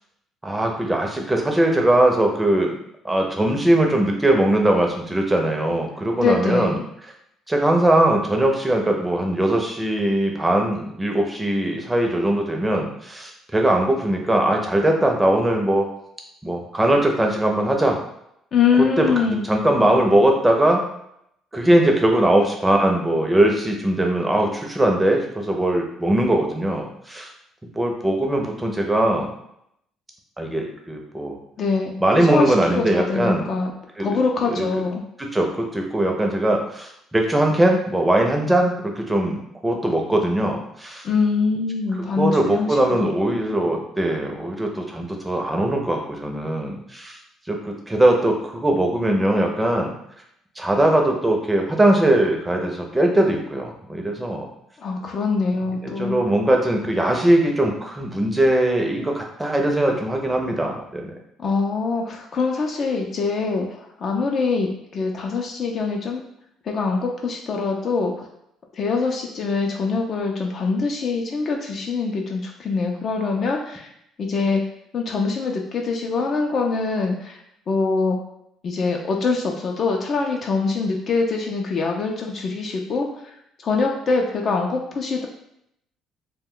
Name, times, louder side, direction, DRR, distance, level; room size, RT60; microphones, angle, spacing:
voice 1, 0.4-2.7 3.0-6.8 7.5-15.9 16.4-18.0 19.0-20.8 21.5-27.3 27.7-29.3 30.4-31.4 32.0-33.4 34.0-34.2 34.5-34.7 35.2-41.1 42.2-47.2 47.5-49.9 50.6-54.5 55.8-61.1, right 1 dB, 15° right, 1 dB, 0.6 m, -20 dB
voice 2, 6.2-6.8 18.5-19.5 31.6-33.7 34.0-35.0 41.0-43.1 54.8-56.1 61.4-66.2 66.7-68.1 68.7-73.9 74.2-74.6 74.9-77.4 77.7-78.2 78.6-83.1 83.6-85.3, left 4 dB, 50° left, 1 dB, 0.4 m, -23 dB
2.2 x 2.2 x 3.6 m, 0.76 s
cardioid pair, 90°, 0 cm